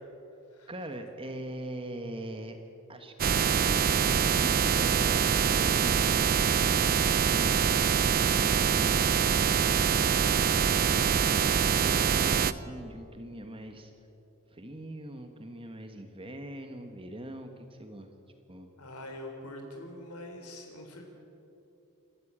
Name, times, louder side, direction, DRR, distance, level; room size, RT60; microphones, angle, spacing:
voice 1, 0.7-2.6 2.9-13.9 14.5-18.1 18.5-18.7, right 1 dB, 25° right, 6 dB, 1.3 m, -42 dB
sound 1, 3.2-12.5, right 7 dB, 40° right, 0.6 m, -24 dB
voice 2, 9.9-10.5 18.8-21.0, left 1 dB, 90° left, 2 dB, 3.9 m, -44 dB
27.5 x 13.0 x 8.8 m, 2.9 s
head